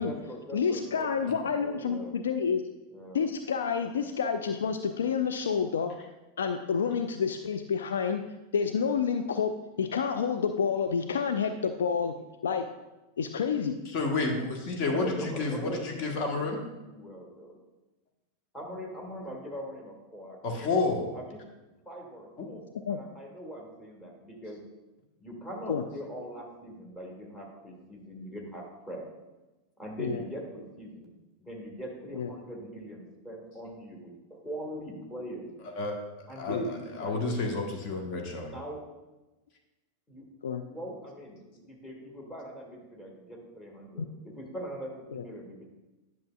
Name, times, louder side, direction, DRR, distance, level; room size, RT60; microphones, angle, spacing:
voice 1, 0.0-2.1 2.9-3.2 14.9-17.6 18.5-20.6 21.1-21.4 21.8-24.6 25.2-29.0 29.8-35.5 36.3-37.6 38.4-38.8 40.1-40.2 40.7-45.7, equal, 15° left, 0 dB, 1.7 m, -41 dB
voice 2, 0.5-2.6 3.1-5.9 6.4-8.2 8.5-9.5 9.8-12.1 12.4-12.7 13.2-13.8 22.9-23.0 25.7-25.8 30.0-30.2 32.2-32.3 36.5-36.6 40.4-40.6 44.0-44.1 45.1-45.2, left 6 dB, 65° left, 7 dB, 0.3 m, -29 dB
voice 3, 13.9-16.6 20.4-21.0 35.7-36.0 36.4-36.6 37.0-38.5, left 3 dB, 40° left, 2 dB, 1.1 m, -30 dB
10.5 x 6.1 x 2.3 m, 1.1 s
figure-of-eight pair, 90°, 0 cm